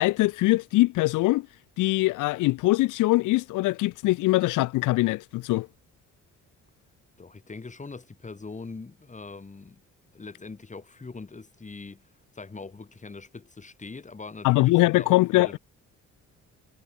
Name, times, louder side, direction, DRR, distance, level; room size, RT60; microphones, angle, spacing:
voice 1, 0.0-1.5 1.8-5.7 14.4-15.6, left 19 dB, 85° left, 0.5 m, -22 dB
voice 2, 7.2-9.8 10.1-15.6, left 4 dB, 25° left, 3.3 m, -42 dB
cardioid pair, 90°, 30 cm